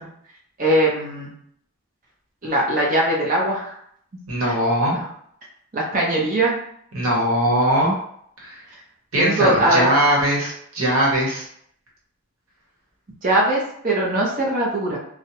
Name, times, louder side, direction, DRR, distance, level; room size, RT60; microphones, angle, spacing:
voice 1, 0.6-1.3 2.4-3.7 4.9-5.0 5.7-6.5 9.2-9.9 13.2-15.0, right 1 dB, 40° right, -3 dB, 0.7 m, -20 dB
voice 2, 4.3-4.9 6.9-8.0 8.4-8.6 9.1-11.4, right 1 dB, 75° right, -4 dB, 1.0 m, -20 dB
2.4 x 2.0 x 2.8 m, 0.67 s
head